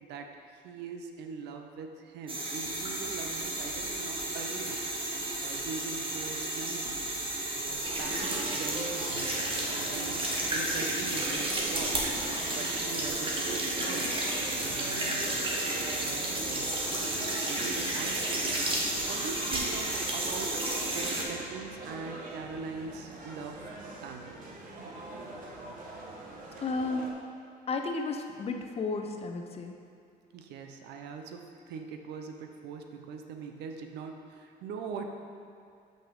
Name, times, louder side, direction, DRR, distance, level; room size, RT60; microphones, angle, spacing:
voice 1, 0.0-4.8 5.4-7.1 7.4-12.0 12.5-14.1 14.6-16.8 17.2-18.2 18.7-20.6 20.9-23.7 24.0-24.4 30.3-35.1, right 5 dB, 80° right, 4 dB, 0.8 m, -42 dB
sound 1, 2.3-21.2, right 1 dB, 30° right, 1.5 m, -32 dB
sound 2, 7.8-27.1, right 2 dB, 55° right, 1.4 m, -42 dB
voice 2, 26.6-27.2 27.7-29.7, left 3 dB, 35° left, 4 dB, 0.7 m, -33 dB
5.9 x 5.7 x 6.6 m, 2.4 s
cardioid pair, 110°, 17 cm